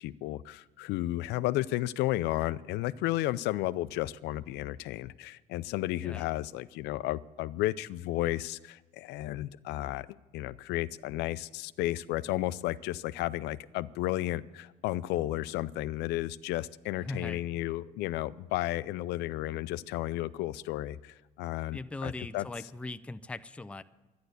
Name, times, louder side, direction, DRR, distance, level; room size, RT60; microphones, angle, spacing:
voice 1, 0.0-10.1 10.3-22.5, left 16 dB, 85° left, 17 dB, 0.5 m, -33 dB
voice 2, 17.0-17.5 21.7-23.8, left 2 dB, 5° left, 11 dB, 0.5 m, -39 dB
12.0 x 10.5 x 8.1 m, 1.2 s
cardioid pair, 110°, 17 cm